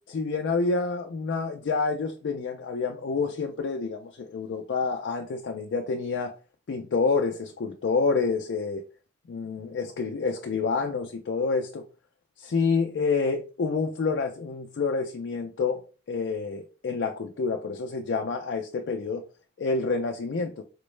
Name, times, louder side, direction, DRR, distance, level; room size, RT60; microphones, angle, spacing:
voice 1, 0.1-6.3 6.7-8.8 9.3-11.8 12.4-19.3 19.6-20.6, left 4 dB, 75° left, 0.4 m, -28 dB
4.4 x 2.0 x 3.1 m
head